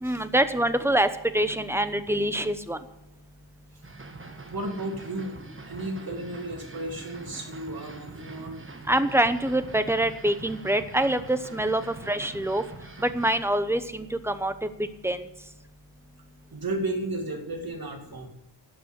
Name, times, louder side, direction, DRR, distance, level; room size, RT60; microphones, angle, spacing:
voice 1, 0.0-1.1 1.3-2.8 8.9-11.8 12.1-12.6 13.0-14.5 15.0-15.2, right 1 dB, 5° right, 11 dB, 0.9 m, -25 dB
sound 1, 3.8-13.4, right 3 dB, 25° right, 1.4 m, -44 dB
voice 2, 4.5-5.4 5.7-8.6 16.5-18.3, right 2 dB, 50° right, 4 dB, 2.5 m, -33 dB
12.5 x 7.8 x 8.1 m, 0.91 s
wide cardioid pair, 120°, 46 cm